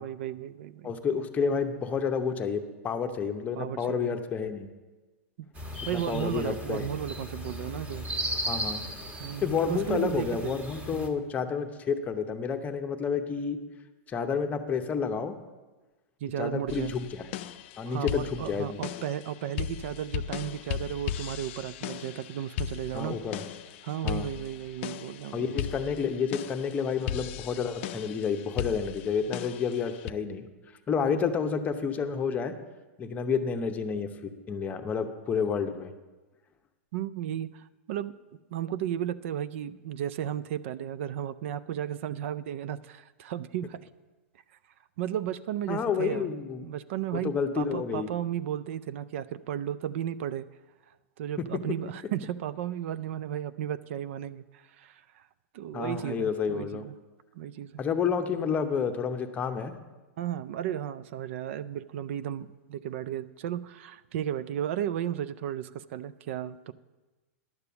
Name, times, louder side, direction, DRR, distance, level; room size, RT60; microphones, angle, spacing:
voice 1, 0.0-0.9 3.6-4.1 5.9-8.1 9.2-10.6 10.9-11.3 16.2-16.9 17.9-23.2 23.8-25.7 31.1-31.2 36.9-38.1 38.5-43.8 45.0-46.3 46.6-50.5 51.2-55.2 55.5-56.9 57.3-57.8 60.2-66.7, right 10 dB, 60° right, 15 dB, 0.4 m, -34 dB
voice 2, 0.8-4.7 5.9-6.9 8.4-8.8 9.4-13.6 14.1-15.3 16.4-17.3 17.8-18.8 22.9-23.4 24.0-24.3 25.3-30.5 30.9-32.5 33.0-35.9 45.7-46.7 47.1-48.1 55.7-56.8 57.8-59.7, left 6 dB, 20° left, 7 dB, 0.7 m, -30 dB
sound 1, 5.5-11.1, equal, 25° right, 1.5 m, -36 dB
sound 2, 16.7-30.1, left 10 dB, 55° left, 0.5 m, -37 dB
11.0 x 6.9 x 6.8 m, 1.2 s
hypercardioid pair, 140°, 8 cm